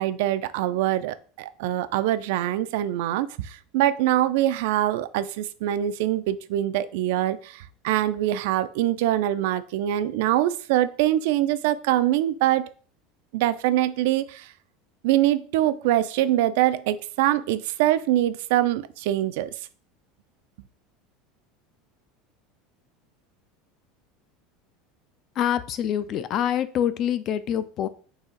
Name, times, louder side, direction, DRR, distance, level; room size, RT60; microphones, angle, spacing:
voice 1, 0.0-12.7 13.3-14.5 15.0-19.5, right 13 dB, 75° right, 13 dB, 0.3 m, -24 dB
voice 2, 25.4-27.9, left 10 dB, 40° left, 13 dB, 0.3 m, -25 dB
4.1 x 2.9 x 3.7 m, 0.41 s
supercardioid pair, 155°, 0 cm